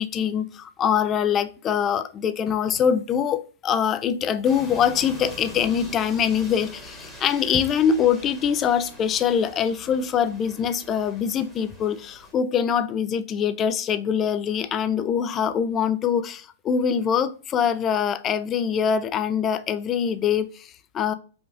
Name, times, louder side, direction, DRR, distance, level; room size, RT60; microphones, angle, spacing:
voice 1, 0.0-21.1, left 8 dB, 25° left, 0.3 m, -24 dB
sound 1, 4.4-12.3, equal, ahead, 1.1 m, -43 dB
5.0 x 2.4 x 2.5 m
hypercardioid pair, 135°, 0 cm